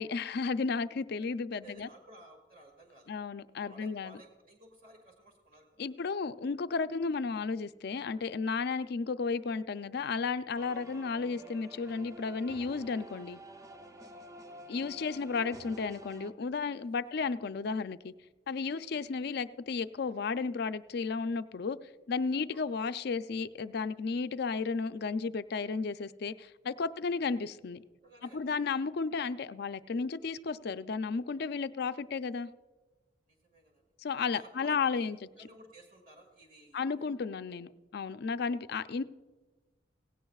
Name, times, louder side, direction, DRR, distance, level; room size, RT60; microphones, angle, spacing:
voice 1, 0.0-1.9 3.1-4.2 5.8-13.4 14.7-18.1 18.5-21.8 22.1-27.8 28.3-32.5 34.0-35.2 36.7-39.0, left 4 dB, 60° left, 0.4 m, -33 dB
voice 2, 1.5-3.1 3.6-5.9 10.6-10.8 14.2-14.7 16.9-17.0 22.5-22.6 28.0-28.7 33.3-33.8 34.3-35.1 35.4-37.1, right 1 dB, 50° right, 1.9 m, -56 dB
sound 1, 10.5-16.3, equal, 20° right, 0.6 m, -50 dB
17.5 x 16.5 x 2.4 m
head